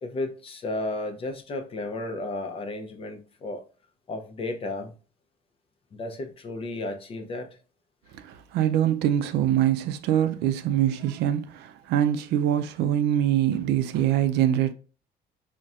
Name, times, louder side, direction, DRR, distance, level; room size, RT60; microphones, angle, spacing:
voice 1, 0.0-3.6 4.1-4.9 5.9-7.6, left 2 dB, 35° left, 0.5 m, -33 dB
voice 2, 8.1-14.7, right 11 dB, 80° right, 0.4 m, -24 dB
4.0 x 2.1 x 2.4 m
cardioid pair, 110°, 17 cm